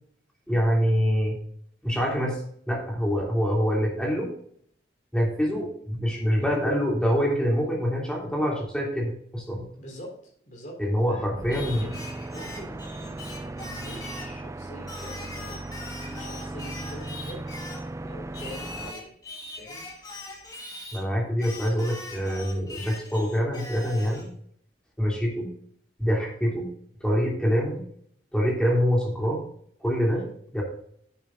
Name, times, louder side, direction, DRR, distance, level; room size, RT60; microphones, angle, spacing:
voice 1, 0.5-1.3 1.8-2.4 2.7-4.3 5.1-9.6 10.8-11.8 20.9-24.3 25.0-25.5 26.0-26.7 27.0-27.8 28.3-29.5 29.8-30.2 30.5-30.6, equal, 5° left, -2 dB, 2.9 m, -25 dB
voice 2, 9.8-10.8 11.1-11.3 11.5-12.0 12.3-13.1 13.6-15.6 16.0-17.4 18.0-19.1 19.6-19.8 30.1-30.3, equal, 45° left, 0 dB, 4.0 m, -44 dB
sound 1, 11.3-18.9, right 2 dB, 15° right, 0.4 m, -37 dB
Singing, 11.5-14.4 14.9-17.9 18.3-21.0 21.4-24.3, left 2 dB, 20° left, 2.2 m, -41 dB
10.5 x 8.9 x 2.6 m, 0.64 s
head